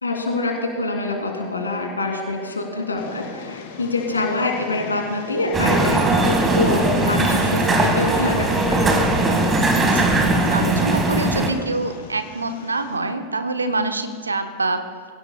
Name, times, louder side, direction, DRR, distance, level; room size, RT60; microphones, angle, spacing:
voice 1, 0.0-8.9, left 2 dB, 80° left, 1 dB, 2.6 m, -25 dB
Train, 3.0-13.0, left 5 dB, 55° left, 1.8 m, -37 dB
sound 1, 5.5-11.5, right 2 dB, 15° right, 1.8 m, -19 dB
voice 2, 9.7-14.8, right 2 dB, 80° right, 8 dB, 1.0 m, -26 dB
23.0 x 16.0 x 2.3 m, 2.1 s
figure-of-eight pair, 90°, 0 cm